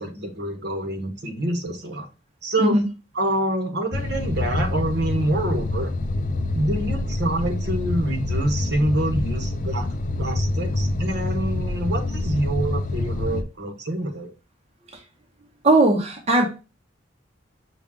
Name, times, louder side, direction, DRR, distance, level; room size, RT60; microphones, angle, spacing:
voice 1, 0.0-2.1 2.4-2.8 3.1-5.9 6.5-9.9 10.2-14.3, right 1 dB, 60° right, 4 dB, 0.9 m, -26 dB
sound 1, 3.9-13.4, left 2 dB, 45° left, 0.4 m, -26 dB
voice 2, 15.6-16.5, right 2 dB, 35° right, 1 dB, 0.7 m, -18 dB
5.7 x 2.3 x 3.6 m, 0.31 s
head